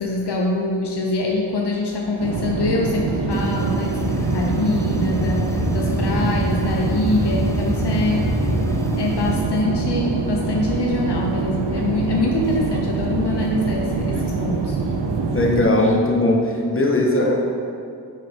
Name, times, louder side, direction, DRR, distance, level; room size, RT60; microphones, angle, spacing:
voice 1, 0.0-8.2 9.0-14.8, left 2 dB, 70° left, -1 dB, 0.8 m, -24 dB
sound 1, 2.2-15.6, right 4 dB, 80° right, 0.7 m, -24 dB
sound 2, 3.3-9.4, left 1 dB, 5° left, 0.7 m, -26 dB
voice 2, 15.3-17.4, left 1 dB, 30° left, -1 dB, 1.3 m, -18 dB
5.5 x 5.2 x 5.3 m, 2.5 s
cardioid pair, 45°, 43 cm